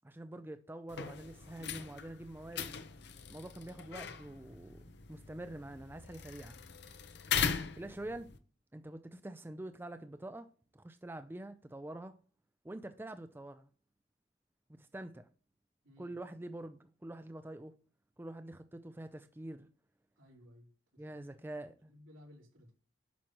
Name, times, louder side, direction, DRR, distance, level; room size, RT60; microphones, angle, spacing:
voice 1, 0.0-2.7 3.3-6.6 7.8-8.3 8.7-10.5 10.7-12.1 12.6-13.7 14.7-15.3 16.0-17.7 18.2-19.7 21.0-21.9, right 1 dB, 10° right, 0.4 m, -46 dB
sound 1, 0.9-8.4, left 7 dB, 55° left, 0.7 m, -40 dB
voice 2, 15.8-16.1 20.2-21.5 21.9-22.7, left 1 dB, 90° right, 3.3 m, -58 dB
9.4 x 6.1 x 3.0 m
head